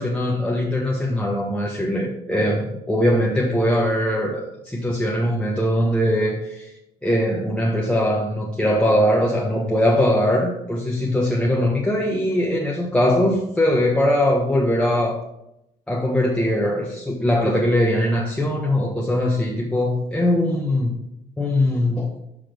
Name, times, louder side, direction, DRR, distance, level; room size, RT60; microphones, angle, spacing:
voice 1, 0.0-6.7 7.0-15.2 15.9-21.0 21.4-22.1, left 1 dB, 5° left, -2 dB, 1.4 m, -21 dB
6.9 x 5.8 x 5.1 m, 0.85 s
supercardioid pair, 60°, 18 cm